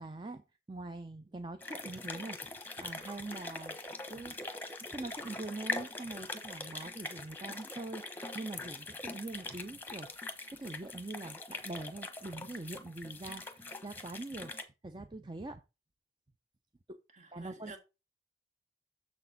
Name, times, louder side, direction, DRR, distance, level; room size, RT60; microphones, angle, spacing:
voice 1, 0.0-4.6 4.9-14.5 14.8-15.6 16.9-17.0 17.3-17.8, right 2 dB, 25° right, 0.5 m, -44 dB
sound 1, 1.6-14.6, left 3 dB, 10° left, 1.0 m, -42 dB
voice 2, 17.1-17.8, right 3 dB, 45° right, 1.8 m, -51 dB
7.1 x 6.5 x 3.9 m
head